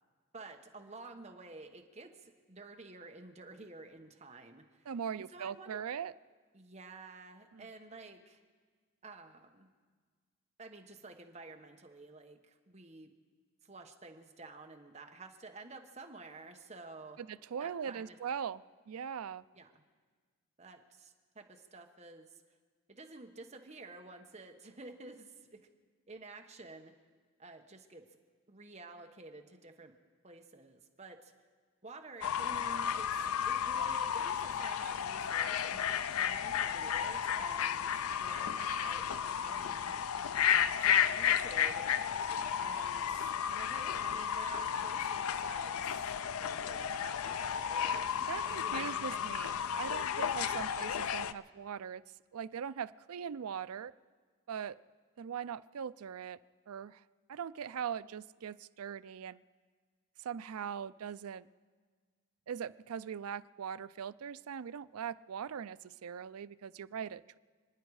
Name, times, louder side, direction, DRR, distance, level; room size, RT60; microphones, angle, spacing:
voice 1, 0.3-4.9 5.3-5.8 6.5-8.4 9.0-9.7 10.6-13.1 13.6-17.2 17.6-18.2 19.5-19.8 20.6-22.3 22.9-25.6 26.1-26.9 27.4-28.0 28.5-30.0 30.2-31.3 31.8-39.9 40.8-49.2, right 3 dB, 30° right, 4 dB, 1.1 m, -51 dB
voice 2, 4.9-6.1 7.5-7.7 17.2-19.4 48.3-52.0 52.3-53.9 54.5-54.8 55.2-56.4 56.7-57.0 57.3-59.4 60.2-61.5 62.5-67.4, right 7 dB, 85° right, 16 dB, 0.4 m, -41 dB
Fowl / Bird, 32.2-51.3, left 8 dB, 85° left, 0.5 m, -33 dB
29.5 x 10.0 x 4.8 m, 1.5 s
head